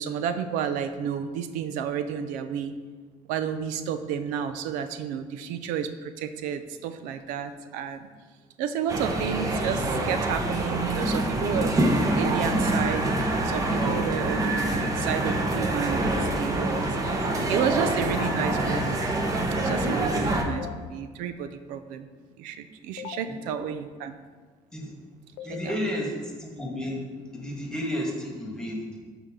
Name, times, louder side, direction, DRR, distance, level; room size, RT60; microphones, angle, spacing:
voice 1, 0.0-2.7 3.3-8.1 8.6-19.0 19.5-22.1 22.4-24.1 25.6-25.8, right 8 dB, 90° right, 10 dB, 0.6 m, -31 dB
sound 1, 8.9-20.4, right 1 dB, 25° right, 1.0 m, -26 dB
sound 2, 18.2-18.3 20.6-20.7 23.0-23.2 25.4-25.7, left 11 dB, 80° left, 0.5 m, -37 dB
voice 2, 25.4-27.0 27.3-29.0, equal, 5° left, -2 dB, 1.7 m, -32 dB
12.0 x 4.6 x 3.8 m, 1.5 s
cardioid pair, 145°, 13 cm